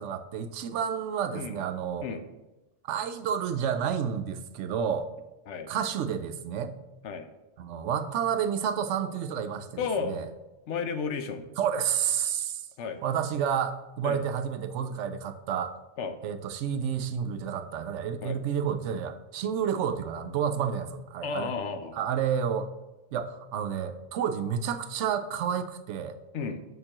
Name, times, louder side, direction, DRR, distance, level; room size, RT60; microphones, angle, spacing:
voice 1, 0.0-2.1 2.9-5.1 5.7-6.7 7.6-10.3 11.6-12.6 13.0-15.8 16.2-21.5 21.9-22.7 23.1-26.2, right 8 dB, 85° right, 10 dB, 0.9 m, -30 dB
voice 2, 9.8-10.2 10.7-11.5 12.8-13.0 14.0-14.2 16.0-16.2 18.2-18.4 21.2-22.0 26.3-26.6, left 5 dB, 80° left, 9 dB, 1.0 m, -32 dB
6.8 x 6.5 x 2.9 m, 1.1 s
omnidirectional pair, 1.2 m